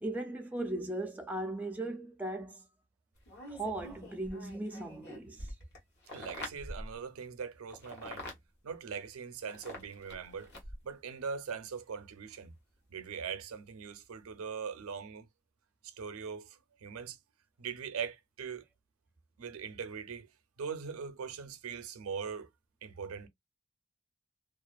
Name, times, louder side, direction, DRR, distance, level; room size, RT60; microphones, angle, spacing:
voice 1, 0.0-2.6 3.5-5.5, right 2 dB, 5° right, 0.3 m, -38 dB
sound 1, 3.1-7.0 7.7-8.4 9.4-10.9 12.3-12.4, left 1 dB, 50° left, 1.0 m, -46 dB
voice 2, 6.1-8.2 8.6-10.5 10.8-12.5 12.9-15.3 15.8-17.2 17.6-18.6 19.4-20.3 20.6-22.5 22.8-23.3, right 6 dB, 80° right, 0.5 m, -41 dB
2.4 x 2.3 x 2.2 m
head